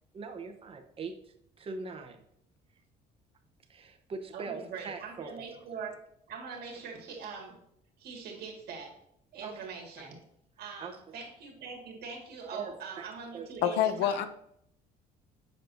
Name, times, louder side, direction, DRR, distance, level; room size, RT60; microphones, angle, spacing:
voice 1, 0.1-2.2 3.7-5.4 9.4-9.7 10.8-11.0 12.5-13.5, right 4 dB, 35° right, 4 dB, 0.8 m, -42 dB
voice 2, 4.3-5.9 6.3-7.6 8.0-9.0 9.3-10.2 10.6-14.3, right 5 dB, 70° right, 1 dB, 1.9 m, -42 dB
voice 3, 13.6-14.3, left 10 dB, 90° left, 12 dB, 0.6 m, -26 dB
7.4 x 5.8 x 2.6 m, 0.72 s
cardioid pair, 110°, 17 cm